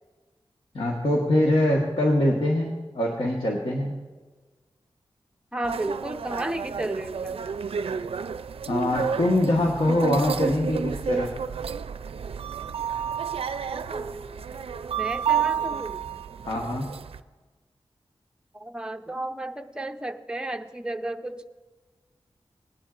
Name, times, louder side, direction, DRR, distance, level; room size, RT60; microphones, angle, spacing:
voice 1, 0.7-4.0 8.7-11.3 16.4-16.9, left 1 dB, 65° left, -1 dB, 1.3 m, -23 dB
voice 2, 5.5-7.4 13.9-14.4 14.7-16.1 18.5-21.4, right 1 dB, 10° right, 6 dB, 0.6 m, -33 dB
sound 1, 5.6-17.2, right 7 dB, 75° right, 0.4 m, -31 dB
19.0 x 10.5 x 2.5 m, 1.3 s
wide cardioid pair, 105°, 10 cm